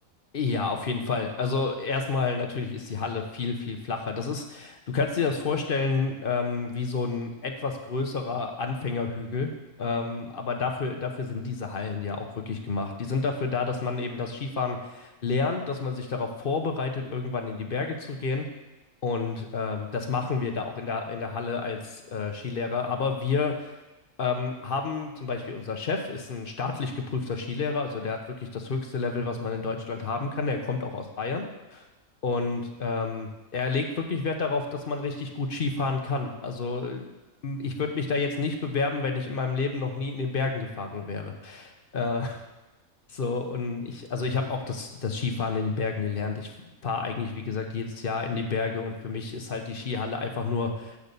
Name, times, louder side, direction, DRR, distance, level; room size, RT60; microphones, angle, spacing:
voice 1, 0.3-9.5 9.8-18.5 19.0-23.8 24.2-31.9 32.2-37.1 37.4-42.4 43.1-46.5 46.8-51.0, left 4 dB, 50° left, 4 dB, 0.8 m, -30 dB
8.4 x 3.9 x 6.7 m, 1.0 s
omnidirectional pair, 1.5 m